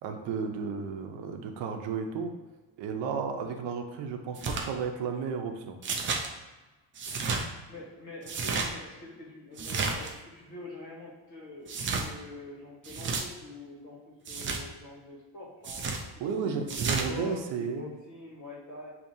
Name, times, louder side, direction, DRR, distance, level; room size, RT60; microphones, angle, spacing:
voice 1, 0.0-2.3 2.8-5.8 16.2-17.9, right 5 dB, 80° right, 4 dB, 0.7 m, -33 dB
sound 1, 4.4-4.7 5.8-6.3 7.0-7.4 8.2-8.7 9.6-10.1 11.7-12.1 12.8-13.2 14.3-14.6 15.6-16.0 16.7-17.1, right 4 dB, 30° right, 0.4 m, -31 dB
voice 2, 7.7-16.0 16.4-16.6 17.1-19.0, left 2 dB, 45° left, -3 dB, 1.4 m, -45 dB
6.9 x 2.8 x 2.7 m, 1.2 s
cardioid pair, 170°, 43 cm